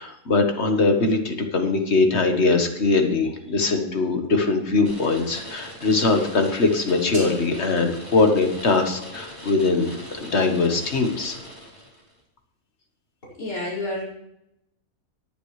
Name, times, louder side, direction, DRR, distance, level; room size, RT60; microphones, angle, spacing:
voice 1, 0.0-11.4, left 3 dB, 50° left, 5 dB, 1.6 m, -21 dB
Old volume knob distortion, 4.8-12.1, equal, 20° left, 3.1 m, -41 dB
sound 1, 7.1-9.1, right 1 dB, 5° right, 4.6 m, -41 dB
voice 2, 13.2-14.0, left 2 dB, 75° left, -7 dB, 5.8 m, -30 dB
18.5 x 9.1 x 3.2 m, 0.84 s
omnidirectional pair, 1.5 m